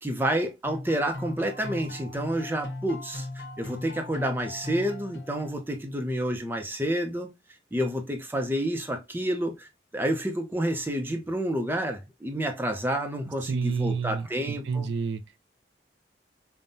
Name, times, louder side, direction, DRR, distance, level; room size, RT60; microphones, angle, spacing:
voice 1, 0.0-7.3 7.7-14.9, right 1 dB, 10° right, 0.6 m, -29 dB
sound 1, 0.6-5.8, left 2 dB, 85° left, 1.0 m, -39 dB
voice 2, 13.3-15.2, right 5 dB, 75° right, 0.4 m, -30 dB
5.2 x 2.2 x 2.6 m
head